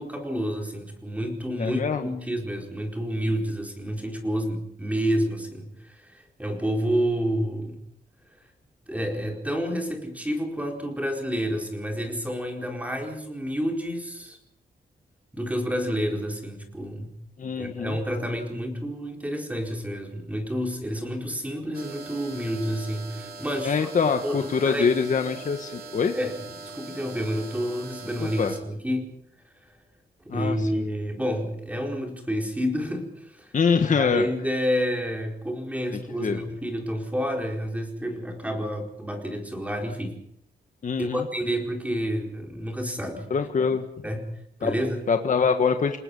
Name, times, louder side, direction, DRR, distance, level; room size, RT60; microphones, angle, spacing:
voice 1, 0.0-7.8 8.9-14.4 15.3-17.1 17.6-23.9 24.2-24.9 26.1-26.4 26.7-29.1 29.7-29.8 30.2-33.5 33.9-40.1 41.0-43.3 44.0-44.2 44.6-45.0, equal, 10° right, 2 dB, 4.5 m, -29 dB
voice 2, 1.6-2.1 17.4-18.0 23.6-26.1 28.2-28.5 30.3-30.8 33.5-34.3 35.9-36.4 40.8-41.2 43.3-43.8 44.6-44.7 45.1-46.0, left 5 dB, 45° left, 6 dB, 1.6 m, -24 dB
sound 1, 21.7-28.6, right 3 dB, 60° right, 3.9 m, -41 dB
29.5 x 19.0 x 5.6 m, 0.70 s
wide cardioid pair, 125°, 17 cm